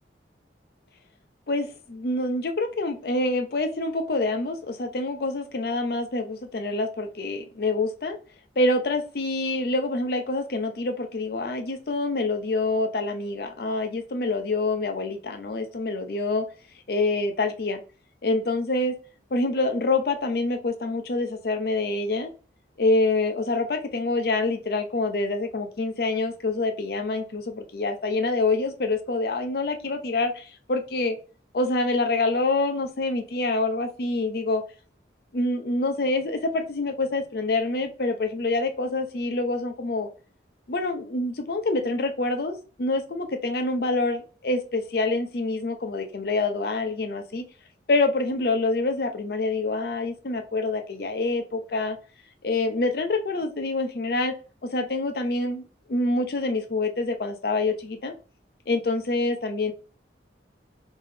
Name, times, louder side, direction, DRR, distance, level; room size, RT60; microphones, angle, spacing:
voice 1, 1.5-8.2 8.6-16.4 16.9-17.8 18.2-18.9 19.3-22.3 22.8-31.2 31.5-34.6 35.3-40.1 40.7-47.4 47.9-52.0 52.4-54.3 54.6-58.1 58.7-59.7, left 2 dB, 55° left, 6 dB, 0.5 m, -26 dB
3.6 x 3.3 x 2.7 m, 0.37 s
head